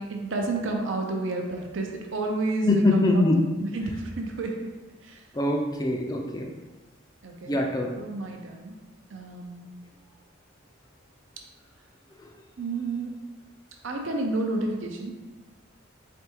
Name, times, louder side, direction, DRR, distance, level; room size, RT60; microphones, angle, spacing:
voice 1, 0.0-3.2 3.6-4.7 5.0-5.2 7.2-7.6 8.0-8.7 9.1-9.6 12.6-13.2 13.8-15.1, right 2 dB, 60° right, 2 dB, 0.5 m, -30 dB
voice 2, 2.7-3.5 5.3-6.5 7.5-7.9, left 2 dB, 15° left, 1 dB, 0.4 m, -23 dB
4.4 x 3.4 x 2.9 m, 1.1 s
head